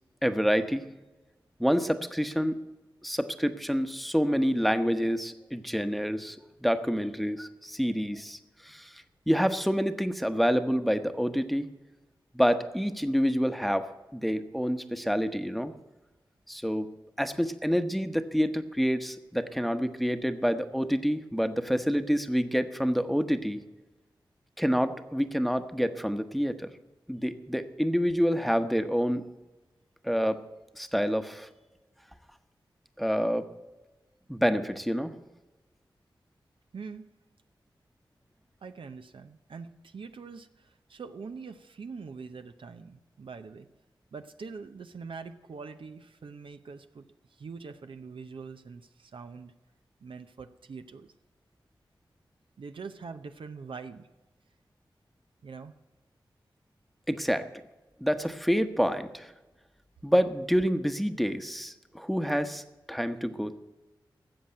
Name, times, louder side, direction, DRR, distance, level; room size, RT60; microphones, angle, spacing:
voice 1, 0.2-0.8 1.6-2.6 3.0-11.7 12.3-15.7 16.5-16.9 17.2-23.6 24.6-26.7 27.1-29.3 30.0-30.4 30.8-31.5 33.0-33.5 34.3-35.1 57.1-57.5 58.0-59.3 60.0-62.6 62.9-63.6, equal, ahead, 9 dB, 1.0 m, -27 dB
voice 2, 36.7-37.1 38.6-43.7 44.1-47.0 47.4-49.5 50.0-51.1 52.6-54.1 55.4-55.7, right 5 dB, 75° right, 8 dB, 0.6 m, -43 dB
14.0 x 7.5 x 8.9 m, 1.1 s
cardioid pair, 40°, 9 cm